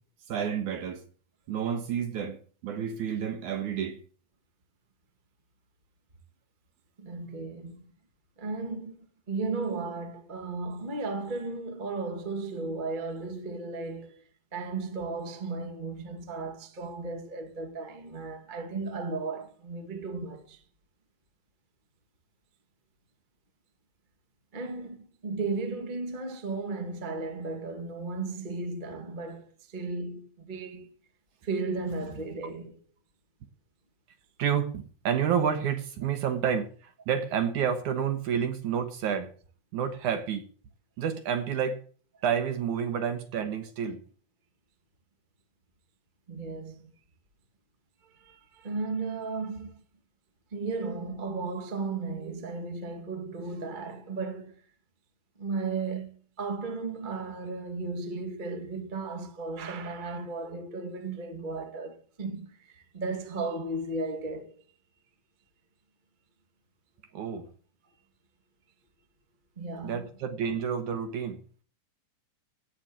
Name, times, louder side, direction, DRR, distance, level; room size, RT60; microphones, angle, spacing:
voice 1, 0.3-1.0 1.5-4.0 34.4-39.3 39.7-40.5 41.0-41.8 42.2-44.0 67.1-67.5 69.8-71.6, right 8 dB, 65° right, 2.4 m, -30 dB
voice 2, 7.0-7.8 8.4-14.1 14.5-20.6 24.5-30.9 31.4-32.8 46.3-46.9 48.0-49.8 50.5-54.6 55.4-64.6 69.6-70.0, right 3 dB, 25° right, 1.1 m, -35 dB
17.0 x 6.2 x 8.3 m
omnidirectional pair, 4.3 m